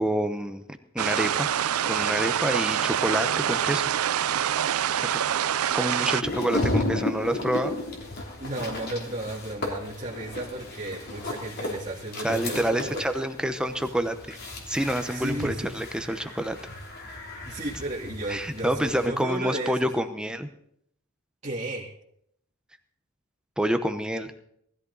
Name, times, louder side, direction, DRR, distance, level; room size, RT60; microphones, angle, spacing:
voice 1, 0.0-1.5 1.8-3.8 5.1-5.2 5.7-7.8 12.2-14.4 14.7-16.6 18.3-20.5 23.6-24.3, right 1 dB, 5° right, 8 dB, 0.9 m, -27 dB
sound 1, 1.0-6.2, right 10 dB, 85° right, 0.5 m, -26 dB
sound 2, 6.2-19.1, left 2 dB, 50° left, 3.1 m, -34 dB
voice 2, 8.4-13.0 15.1-15.8 17.5-19.9 21.4-21.9, right 1 dB, 30° right, -6 dB, 2.2 m, -34 dB
19.0 x 13.5 x 4.1 m, 0.71 s
head